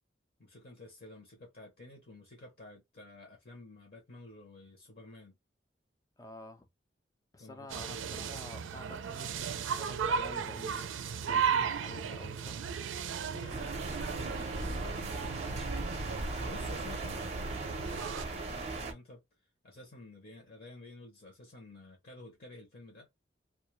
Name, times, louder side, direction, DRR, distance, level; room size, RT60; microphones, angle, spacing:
voice 1, 0.4-5.4 7.4-7.7 13.3-15.7 16.1-19.2 19.6-23.1, left 2 dB, 50° left, 0.7 m, -52 dB
voice 2, 6.2-6.7 7.3-11.0 11.3-12.7, left 2 dB, 20° left, 0.4 m, -49 dB
sound 1, 7.7-18.2, right 6 dB, 90° right, 0.4 m, -36 dB
sound 2, 13.5-18.9, right 2 dB, 35° right, 0.5 m, -37 dB
2.3 x 2.1 x 3.0 m
head